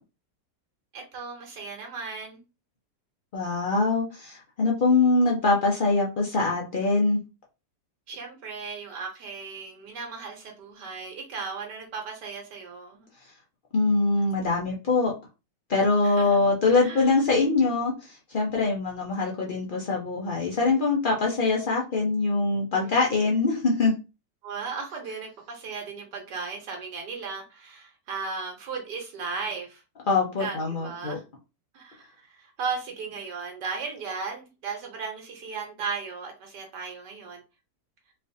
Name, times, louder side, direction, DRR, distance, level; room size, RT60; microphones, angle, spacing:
voice 1, 0.9-2.4 8.1-13.1 16.0-16.5 16.8-17.2 22.8-23.0 23.2-23.4 24.4-29.8 30.4-31.2 31.7-37.4, right 5 dB, 80° right, 1 dB, 1.4 m, -36 dB
voice 2, 3.3-7.2 13.7-15.1 15.7-23.9 30.1-31.2, left 3 dB, 70° left, -1 dB, 0.5 m, -23 dB
4.2 x 2.5 x 2.6 m, 0.29 s
omnidirectional pair, 1.8 m